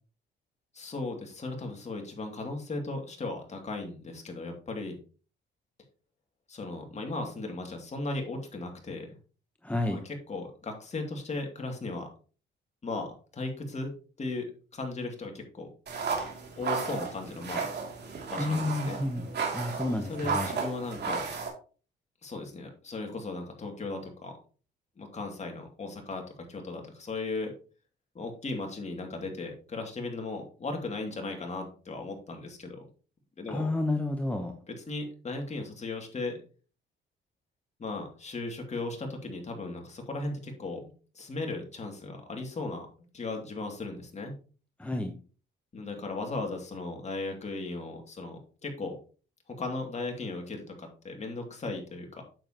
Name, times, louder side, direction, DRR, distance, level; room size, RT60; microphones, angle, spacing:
voice 1, 0.7-5.0 6.5-9.2 9.9-10.0 10.3-12.1 12.8-13.9 14.2-14.4 14.7-15.7 16.6-17.7 18.3-19.0 20.1-21.2 22.2-24.3 25.0-27.5 28.1-32.8 33.4-33.7 34.7-36.4 37.8-40.8 41.1-42.9 43.1-44.3 45.7-49.0 49.5-52.2, left 3 dB, 35° left, 2 dB, 2.6 m, -36 dB
voice 2, 9.6-10.0 18.3-20.5 33.5-34.5 44.8-45.1, left 2 dB, 5° left, 4 dB, 1.0 m, -30 dB
sound 1, 15.9-21.5, right 5 dB, 55° right, 2.7 m, -34 dB
9.0 x 7.2 x 3.0 m, 0.38 s
cardioid pair, 90°, 20 cm